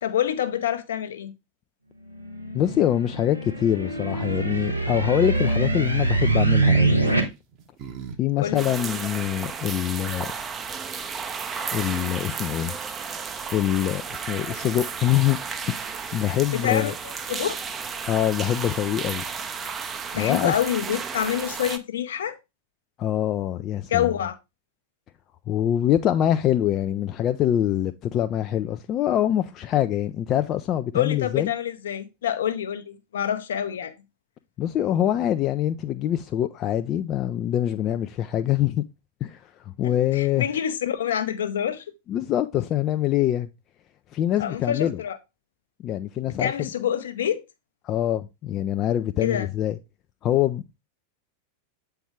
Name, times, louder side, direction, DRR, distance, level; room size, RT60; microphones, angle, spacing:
voice 1, 0.0-1.3 8.4-8.7 16.5-17.6 20.1-22.4 23.9-24.3 30.9-33.9 39.8-41.8 44.4-45.2 46.3-47.4 49.2-49.5, left 9 dB, 65° left, 0.8 m, -27 dB
sound 1, 2.2-7.2, right 2 dB, 90° right, 1.2 m, -23 dB
voice 2, 2.5-7.0 8.2-10.3 11.7-12.7 13.5-15.4 15.7-16.9 18.1-19.2 20.2-20.5 23.0-24.1 25.5-31.5 34.6-38.8 39.2-39.4 39.8-40.5 42.1-43.5 44.1-45.0 45.8-46.5 47.8-49.8 50.2-50.8, left 11 dB, 35° left, 0.4 m, -24 dB
sound 2, 5.7-6.1 7.1-8.2 8.5-8.6 10.2-10.3 10.5-11.0, right 7 dB, 40° right, 1.1 m, -42 dB
sound 3, 8.6-21.8, right 6 dB, 20° right, 0.6 m, -33 dB
8.0 x 4.5 x 3.3 m
figure-of-eight pair, 90°, 0 cm